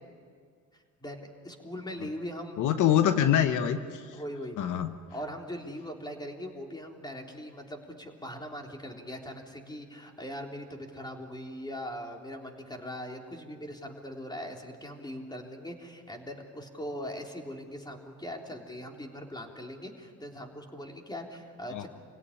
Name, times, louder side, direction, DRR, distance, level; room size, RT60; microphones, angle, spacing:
voice 1, 0.7-2.9 4.1-4.8 5.1-21.9, equal, 15° left, 1 dB, 3.6 m, -41 dB
voice 2, 2.6-4.2 4.6-4.9 21.7-21.9, left 10 dB, 80° left, 9 dB, 1.1 m, -25 dB
27.0 x 17.0 x 9.9 m, 2.1 s
cardioid pair, 90°, 30 cm